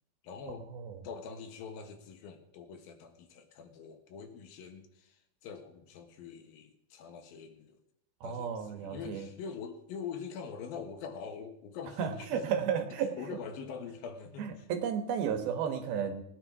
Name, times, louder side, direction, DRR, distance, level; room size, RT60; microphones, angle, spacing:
voice 1, 0.2-0.7 1.0-7.8 8.2-12.5 13.1-14.7, left 6 dB, 75° left, 6 dB, 3.1 m, -44 dB
voice 2, 8.2-9.3 12.0-13.1 14.4-16.2, right 7 dB, 80° right, 6 dB, 3.1 m, -33 dB
19.0 x 9.8 x 4.8 m, 0.80 s
omnidirectional pair, 4.3 m